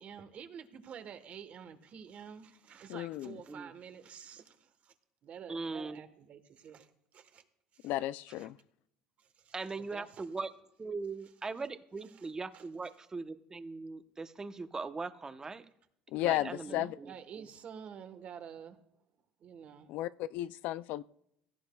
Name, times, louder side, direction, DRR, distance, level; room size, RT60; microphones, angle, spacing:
voice 1, 0.0-4.9 5.2-7.5 7.7-7.9 8.4-8.5 9.2-10.2 12.2-12.3 12.5-12.7 16.3-18.8 19.4-19.9, right 8 dB, 50° right, 1.3 m, -49 dB
voice 2, 2.9-3.4 7.8-8.6 16.1-17.0 19.9-21.0, left 14 dB, 70° left, 0.4 m, -34 dB
voice 3, 5.5-6.0 9.5-10.5 10.8-15.7 16.2-17.5, right 3 dB, 20° right, 0.9 m, -40 dB
16.5 x 15.0 x 2.3 m
supercardioid pair, 95°, 3 cm